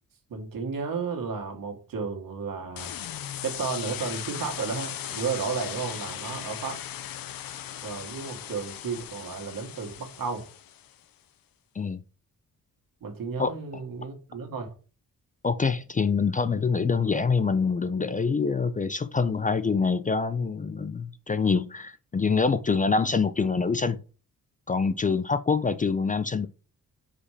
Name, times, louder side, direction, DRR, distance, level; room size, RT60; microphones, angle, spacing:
voice 1, 0.3-2.9 3.4-6.8 7.8-10.5 13.0-14.7, right 5 dB, 75° right, 1.8 m, -33 dB
sound 1, 2.8-11.0, left 11 dB, 80° left, 0.7 m, -38 dB
voice 2, 15.4-24.0 24.7-26.5, left 5 dB, 25° left, 0.4 m, -25 dB
4.9 x 4.3 x 4.9 m
wide cardioid pair, 135°, 34 cm